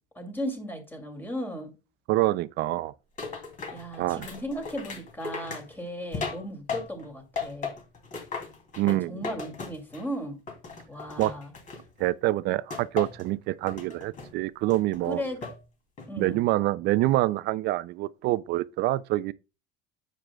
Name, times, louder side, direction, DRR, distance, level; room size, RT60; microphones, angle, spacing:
voice 1, 0.1-1.7 3.7-7.7 8.8-10.4 10.9-11.5 15.1-15.5 16.1-16.5, equal, 10° left, 2.5 m, -36 dB
voice 2, 2.1-2.9 4.0-4.3 8.8-9.2 11.2-11.3 12.0-15.2 16.2-19.3, right 16 dB, 55° right, 0.4 m, -26 dB
sound 1, 3.2-7.1 7.4-10.1 10.5-12.1 12.7-13.3 13.7-14.3 14.7-15.6 16.0-16.4, left 5 dB, 40° left, 2.8 m, -37 dB
9.7 x 7.7 x 2.3 m
cardioid pair, 135°, 21 cm